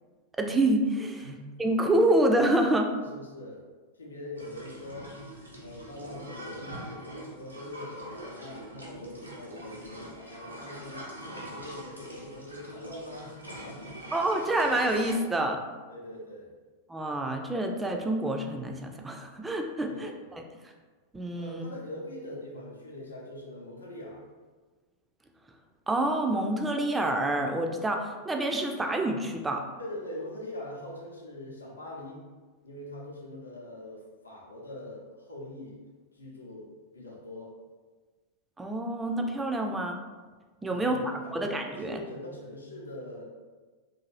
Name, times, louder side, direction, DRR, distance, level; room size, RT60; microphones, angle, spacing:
voice 1, 0.4-1.2 1.6-2.9 14.1-15.6 16.9-20.1 21.1-21.6 25.9-29.6 38.6-40.0 40.6-42.0, right 1 dB, 10° right, 3 dB, 0.3 m, -27 dB
voice 2, 3.0-3.6 3.9-5.1 5.6-14.0 15.9-16.5 19.9-20.3 21.3-24.2 29.8-32.2 32.6-35.8 36.1-37.5 40.7-43.3, left 1 dB, 75° left, -3 dB, 0.6 m, -42 dB
sound 1, 4.4-15.2, right 1 dB, 85° right, 0.6 m, -44 dB
2.5 x 2.5 x 3.0 m, 1.3 s
figure-of-eight pair, 90°, 0 cm